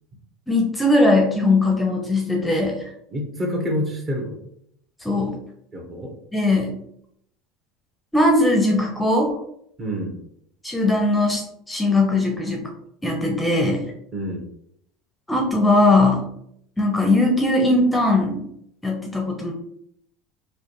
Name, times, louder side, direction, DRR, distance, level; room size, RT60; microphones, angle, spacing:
voice 1, 0.5-2.8 5.0-5.3 6.3-6.7 8.1-9.3 10.6-12.6 13.0-13.8 15.3-16.3 16.8-18.4 18.8-19.5, left 2 dB, 10° left, 1 dB, 0.8 m, -19 dB
voice 2, 3.1-4.4 5.7-6.1 9.8-10.2 14.1-14.4, equal, 35° right, 1 dB, 1.3 m, -27 dB
4.8 x 2.4 x 3.1 m, 0.72 s
hypercardioid pair, 90°, 0 cm